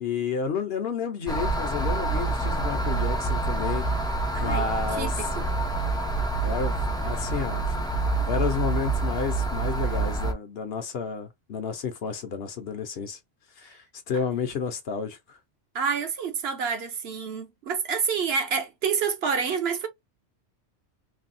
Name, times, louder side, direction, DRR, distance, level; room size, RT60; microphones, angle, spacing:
voice 1, 0.0-3.8 4.4-5.4 6.4-7.7 8.3-13.2 13.6-15.4, left 6 dB, 60° left, 0.9 m, -31 dB
sound 1, 1.3-10.3, right 3 dB, 5° left, 0.3 m, -27 dB
voice 2, 4.3-5.5 15.7-19.9, right 6 dB, 60° right, 1.0 m, -28 dB
3.3 x 2.2 x 2.6 m
omnidirectional pair, 1.2 m